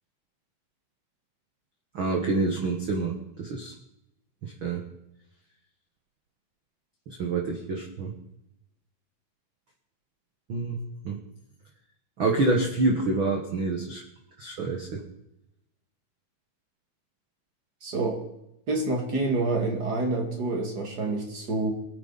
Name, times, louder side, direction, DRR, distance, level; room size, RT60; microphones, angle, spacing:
voice 1, 1.9-3.7 4.4-4.8 7.1-8.1 10.5-10.8 11.0-11.2 12.2-14.0 14.4-15.0, right 3 dB, 80° right, 1 dB, 1.1 m, -27 dB
voice 2, 17.8-18.2 18.7-21.7, right 2 dB, 40° right, 2 dB, 1.6 m, -27 dB
23.0 x 9.0 x 4.0 m, 0.85 s
omnidirectional pair, 4.6 m